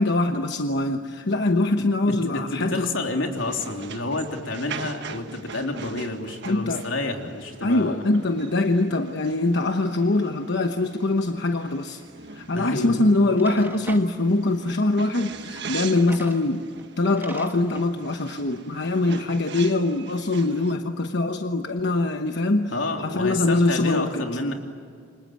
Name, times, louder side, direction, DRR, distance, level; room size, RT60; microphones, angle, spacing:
voice 1, 0.0-2.9 6.4-6.9 7.6-12.0 12.3-16.7 17.0-22.7 23.0-24.3, left 2 dB, 60° left, 5 dB, 1.1 m, -23 dB
voice 2, 1.8-8.0 12.5-13.0 22.7-24.5, left 2 dB, 90° left, 3 dB, 3.4 m, -29 dB
sound 1, 3.4-20.7, right 5 dB, 65° right, 1.5 m, -42 dB
Drawer open or close, 12.6-12.7 13.2-14.1 15.6-16.4 16.8-16.9 17.2-17.9, right 2 dB, 10° right, 1.8 m, -41 dB
29.0 x 26.0 x 7.7 m, 2.2 s
head